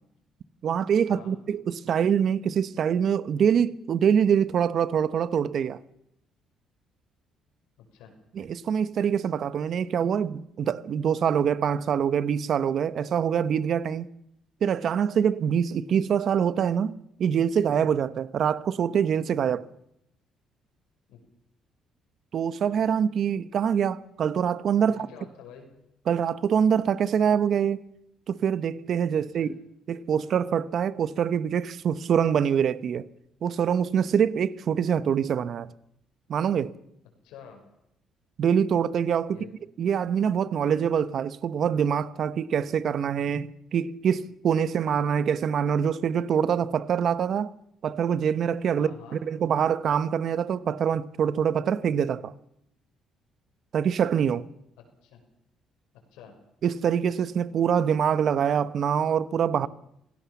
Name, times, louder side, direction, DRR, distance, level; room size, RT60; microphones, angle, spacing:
voice 1, 0.6-5.8 8.3-14.1 14.6-19.7 22.3-25.1 26.1-27.8 28.3-29.5 29.9-33.1 33.4-35.7 36.3-36.7 38.4-39.4 39.8-47.5 47.8-52.3 53.7-54.4 56.6-59.7, right 8 dB, 60° right, 1.0 m, -25 dB
voice 2, 24.9-25.7 29.1-29.5 37.2-37.6 39.3-39.5 48.8-49.2 55.0-55.2 56.1-56.4 59.6-59.7, left 7 dB, 90° left, 6.0 m, -47 dB
26.0 x 17.5 x 7.2 m
cardioid pair, 90°, 0 cm